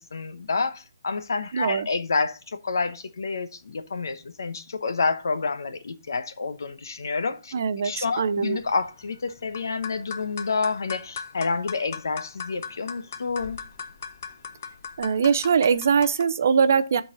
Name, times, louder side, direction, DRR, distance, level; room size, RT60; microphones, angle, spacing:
voice 1, 0.1-7.5 7.8-13.6, left 4 dB, 65° left, 0.9 m, -29 dB
voice 2, 1.5-1.9 7.5-8.6 15.0-17.0, right 6 dB, 40° right, 0.4 m, -22 dB
sound 1, 7.9-16.2, left 6 dB, 35° left, 0.6 m, -39 dB
11.0 x 4.0 x 3.8 m
hypercardioid pair, 175°, 2 cm